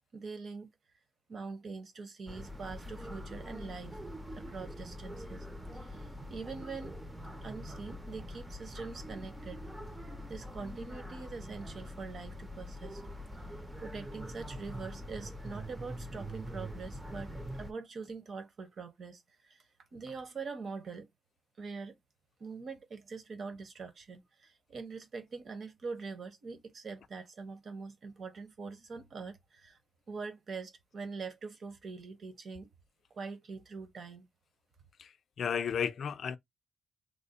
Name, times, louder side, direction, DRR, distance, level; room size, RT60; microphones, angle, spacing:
voice 1, 0.1-0.7 1.3-4.0 4.3-5.5 5.7-7.0 7.4-9.6 10.3-13.0 13.8-19.7 19.9-21.1 21.6-22.0 22.4-29.8 30.1-32.7 33.1-34.3, right 4 dB, 40° right, 0.7 m, -43 dB
sound 1, 2.3-17.7, equal, 10° right, 0.5 m, -44 dB
voice 2, 35.4-36.4, left 7 dB, 45° left, 0.4 m, -33 dB
3.2 x 2.1 x 3.9 m
cardioid pair, 170°, 0 cm